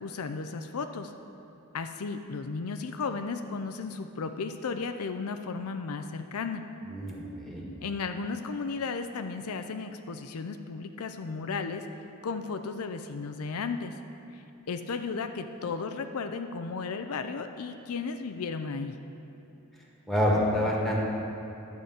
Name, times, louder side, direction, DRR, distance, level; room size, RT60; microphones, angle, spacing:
voice 1, 0.0-1.1 1.7-6.6 7.8-11.9 12.2-14.0 14.3-19.0, left 4 dB, 75° left, 8 dB, 0.5 m, -34 dB
voice 2, 6.9-7.6 20.1-21.0, left 1 dB, ahead, -3 dB, 1.5 m, -27 dB
11.5 x 5.0 x 7.9 m, 3.0 s
head